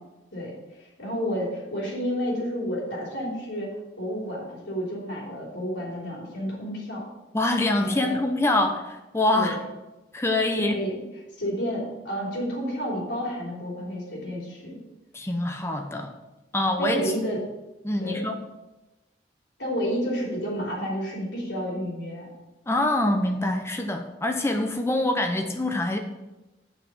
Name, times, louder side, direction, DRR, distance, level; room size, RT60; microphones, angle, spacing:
voice 1, 0.8-3.7 4.0-7.0 7.8-8.2 9.3-9.5 10.7-10.9 11.4-14.8 16.8-17.4 18.0-18.2 19.6-22.3, equal, 75° left, -4 dB, 3.3 m, -30 dB
voice 2, 7.3-9.6 10.1-10.8 15.1-16.1 16.5-17.1 17.8-18.4 22.7-26.0, left 1 dB, 15° left, 4 dB, 0.7 m, -25 dB
7.4 x 5.5 x 6.2 m, 1.1 s
head